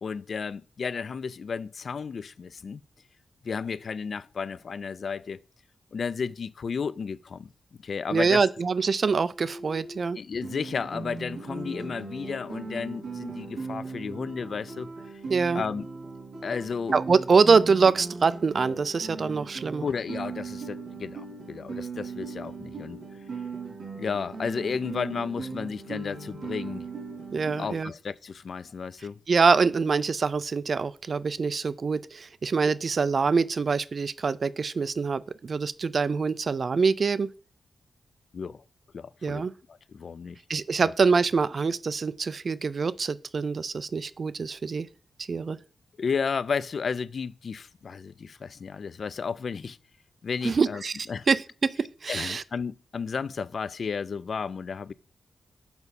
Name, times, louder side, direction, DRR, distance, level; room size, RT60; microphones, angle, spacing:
voice 1, 0.0-2.8 3.4-5.4 5.9-7.5 7.8-8.4 10.2-15.2 15.5-15.9 16.4-17.0 19.8-23.0 24.0-26.9 27.6-29.2 38.3-38.6 38.9-40.4 40.8-40.9 46.0-49.8 50.2-50.8 51.1-51.3 52.1-54.9, left 5 dB, 55° left, 0.3 m, -33 dB
voice 2, 8.1-10.2 15.3-15.6 16.9-19.9 27.3-27.9 29.3-37.3 39.2-39.5 40.5-44.9 45.3-45.6 50.4-50.9 51.3-52.4, right 5 dB, 45° right, 0.4 m, -24 dB
Bowed string instrument, 9.0-14.0, equal, 15° left, 4.0 m, -50 dB
Guitar, 10.4-27.8, right 4 dB, 75° right, 3.0 m, -38 dB
6.9 x 5.4 x 4.1 m
wide cardioid pair, 130°, 0 cm